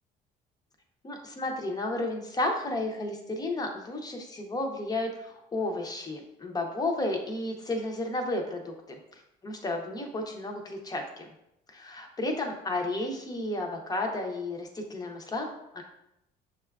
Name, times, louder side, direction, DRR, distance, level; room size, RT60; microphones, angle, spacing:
voice 1, 1.0-9.0 9.4-11.3 11.7-15.8, left 2 dB, 25° left, 3 dB, 0.6 m, -32 dB
6.3 x 2.3 x 2.3 m, 0.83 s
cardioid pair, 110°, 17 cm